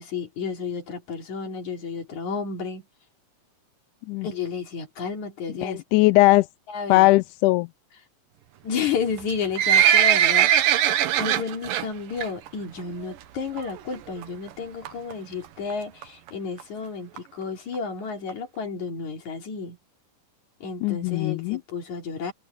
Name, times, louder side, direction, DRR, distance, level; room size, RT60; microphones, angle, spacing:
voice 1, 0.0-2.8 4.2-5.8 6.7-7.1 8.6-10.9 11.2-19.8 20.6-22.3, left 5 dB, 60° left, 4.6 m, -32 dB
voice 2, 5.6-6.5 6.9-7.7 20.8-21.6, left 20 dB, 80° left, 1.9 m, -19 dB
Livestock farm animals working animals, 9.2-11.9 12.2-12.5 12.8-12.9 13.6-13.7 13.9-14.0 14.2-14.3 14.9-15.1 15.7-15.8 16.0-16.1 16.3-16.4 16.6-16.7 17.2-17.3 17.7-17.8 18.3-18.4, right 10 dB, 85° right, 2.8 m, -20 dB
omnidirectional pair, 3.8 m